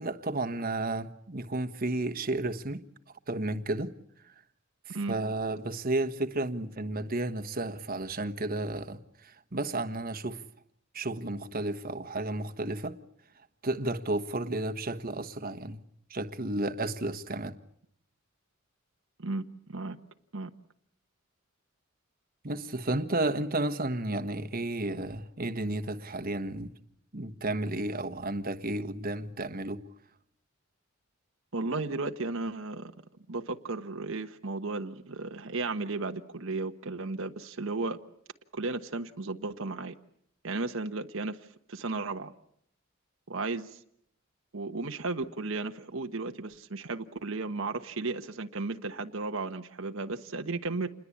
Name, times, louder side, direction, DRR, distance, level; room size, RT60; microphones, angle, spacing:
voice 1, 0.0-2.8 3.3-3.9 4.9-10.4 10.9-13.0 13.6-15.8 16.1-17.5 22.4-26.7 27.1-29.9, right 2 dB, 45° right, 1.4 m, -32 dB
voice 2, 31.5-32.9 33.3-38.0 38.5-39.9 40.4-41.4 41.7-42.3 43.3-43.8 44.5-50.9, right 3 dB, 70° right, 1.2 m, -34 dB
28.5 x 21.5 x 8.6 m
head